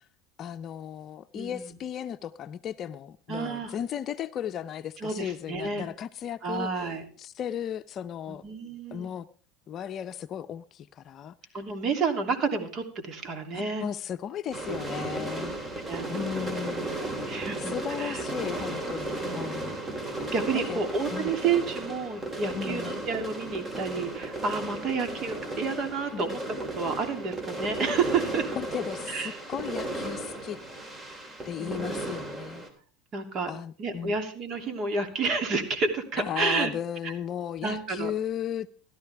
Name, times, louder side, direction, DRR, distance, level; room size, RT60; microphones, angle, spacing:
voice 1, 0.4-6.7 7.2-8.4 8.9-9.3 9.7-11.4 13.5-15.5 16.1-17.0 17.6-19.7 20.7-20.8 21.1-21.3 22.5-22.9 26.1-26.3 28.6-30.6 31.4-32.6 33.5-34.1 36.2-38.7, left 9 dB, 40° left, 0.7 m, -35 dB
voice 2, 1.3-1.7 3.3-3.7 5.0-5.9 6.4-7.1 8.3-9.1 11.5-13.8 15.0-15.1 15.9-16.3 17.0-18.2 19.2-19.7 20.3-26.4 26.7-28.5 29.1-29.4 31.6-32.0 33.1-33.5 33.8-36.7 37.0-37.1 37.6-38.1, right 4 dB, 45° right, 2.9 m, -30 dB
sound 1, 14.5-32.7, right 2 dB, 20° right, 3.2 m, -35 dB
16.0 x 13.0 x 3.5 m
hypercardioid pair, 100°, 0 cm